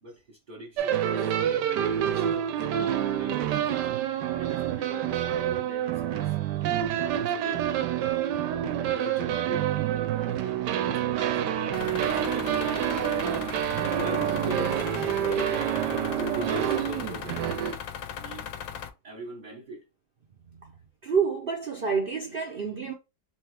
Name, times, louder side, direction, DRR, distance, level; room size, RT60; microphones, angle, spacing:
voice 1, 0.0-2.5 3.1-3.9 4.3-6.3 7.1-7.6 8.8-9.7 10.2-13.2 13.9-17.8 18.2-18.5 19.0-19.8, right 1 dB, 30° right, 1.2 m, -40 dB
sound 1, 0.8-17.8, right 10 dB, 85° right, 1.2 m, -27 dB
sound 2, 11.7-18.9, left 8 dB, 70° left, 1.0 m, -38 dB
voice 2, 21.0-22.9, right 6 dB, 65° right, 0.5 m, -28 dB
3.4 x 3.3 x 3.3 m
omnidirectional pair, 1.8 m